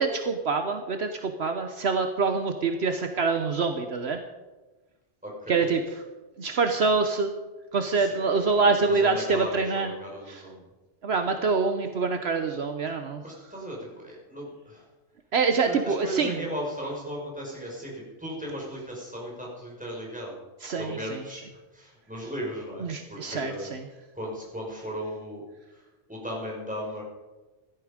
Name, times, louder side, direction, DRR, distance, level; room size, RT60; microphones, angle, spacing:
voice 1, 0.0-4.2 5.5-6.0 6.4-7.3 7.7-9.9 10.3-10.4 11.0-13.2 15.3-16.4 20.6-21.2 22.8-23.8, right 4 dB, 65° right, 6 dB, 1.2 m, -25 dB
voice 2, 5.2-5.7 8.0-8.2 8.5-10.6 13.2-14.8 15.7-20.4 20.8-21.4 21.7-23.7 24.1-25.4 26.1-27.0, equal, 5° right, -3 dB, 5.2 m, -36 dB
16.0 x 13.0 x 5.1 m, 1.2 s
omnidirectional pair, 1.2 m